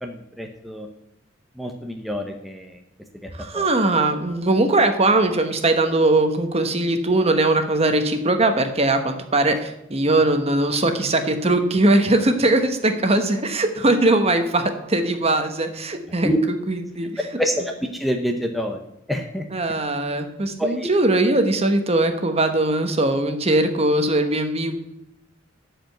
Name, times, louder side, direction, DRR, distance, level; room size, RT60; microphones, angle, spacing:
voice 1, 0.0-0.9 1.6-2.8 3.2-3.7 16.2-16.4 17.4-18.8 19.1-19.5 20.6-20.9, equal, ahead, 3 dB, 0.7 m, -27 dB
voice 2, 3.3-17.3 19.5-24.7, right 2 dB, 30° right, 7 dB, 1.1 m, -20 dB
12.0 x 5.1 x 7.8 m, 0.85 s
head